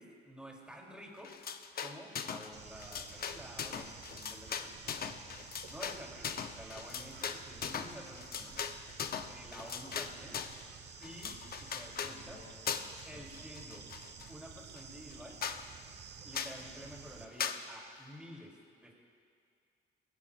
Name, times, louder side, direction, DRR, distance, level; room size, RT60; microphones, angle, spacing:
voice 1, 0.0-1.3 1.8-5.0 5.7-8.6 9.3-10.4 11.0-12.4 13.1-13.9 14.3-15.4 16.2-18.9, equal, 5° right, -1 dB, 3.0 m, -50 dB
sound 1, 1.2-2.5 2.8-10.6 11.0-12.2 12.7-13.1 13.3-14.3 14.8-14.9 15.1-15.2 15.4-15.6 16.3-16.6 17.4-17.6, left 7 dB, 50° left, 0.8 m, -39 dB
Bird / Insect, 2.5-17.3, right 6 dB, 60° right, 1.2 m, -51 dB
voice 2, 11.9-14.3, left 4 dB, 80° left, 2 dB, 2.2 m, -59 dB
20.5 x 16.5 x 2.5 m, 2.3 s
cardioid pair, 90°, 20 cm